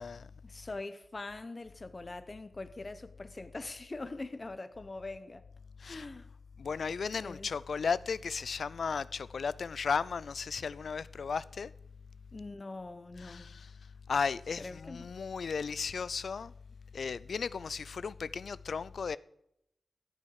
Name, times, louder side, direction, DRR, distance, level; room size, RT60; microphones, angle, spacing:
voice 1, 0.4-5.4 5.8-6.3 7.1-7.5 12.3-13.5 14.6-15.1, left 2 dB, 30° left, 1.0 m, -43 dB
voice 2, 6.6-11.7 13.2-13.7 14.1-16.5 16.9-19.2, left 5 dB, 70° left, 0.4 m, -35 dB
14.5 x 8.8 x 4.8 m
wide cardioid pair, 115°, 0 cm